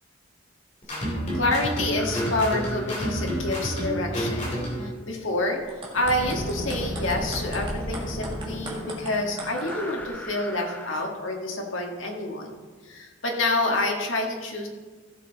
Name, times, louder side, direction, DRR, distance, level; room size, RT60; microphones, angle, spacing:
sound 1, 0.8-4.9, equal, 40° left, 2.9 m, -29 dB
voice 1, 0.9-5.6 5.9-12.5 12.9-14.7, left 2 dB, 90° left, 2 dB, 1.8 m, -28 dB
sound 2, 1.9-4.2 6.0-11.1, left 1 dB, 10° left, 0.7 m, -36 dB
sound 3, 5.6-10.1, right 1 dB, 25° right, 1.8 m, -38 dB
15.0 x 7.1 x 4.0 m, 1.4 s
head